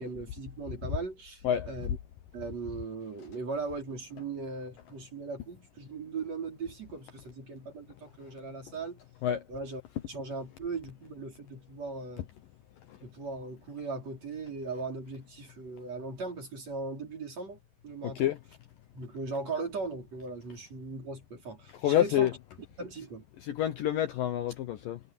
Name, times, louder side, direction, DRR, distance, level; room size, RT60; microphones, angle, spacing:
voice 1, 0.0-2.0 2.3-9.0 9.5-9.8 10.1-12.3 13.0-17.6 17.8-18.3 18.9-22.3 22.8-23.2, right 4 dB, 35° right, 5.8 m, -38 dB
voice 2, 1.4-1.7 9.2-9.4 18.2-18.4 21.7-22.3 23.4-25.0, left 11 dB, 75° left, 2.0 m, -28 dB
omnidirectional pair, 5.3 m